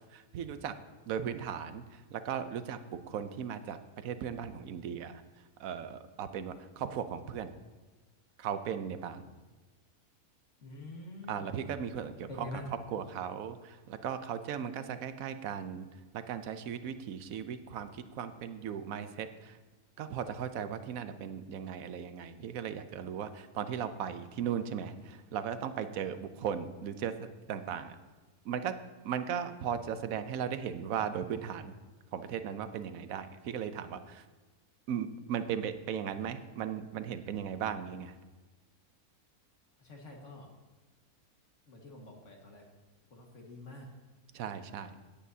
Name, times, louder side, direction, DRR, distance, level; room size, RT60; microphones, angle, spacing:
voice 1, 0.1-0.7 1.1-1.8 2.1-2.8 3.1-5.2 5.6-7.5 8.4-9.2 11.3-12.5 12.9-15.9 16.1-19.5 20.0-28.0 28.5-28.7 29.0-31.7 32.1-34.2 34.9-38.1 44.3-44.9, right 8 dB, 70° right, 10 dB, 1.0 m, -37 dB
voice 2, 10.6-11.5 12.3-12.7 39.8-40.5 41.7-42.6 43.1-43.9, left 2 dB, 50° left, 0 dB, 2.0 m, -46 dB
17.5 x 8.4 x 2.7 m, 1.3 s
omnidirectional pair, 1.6 m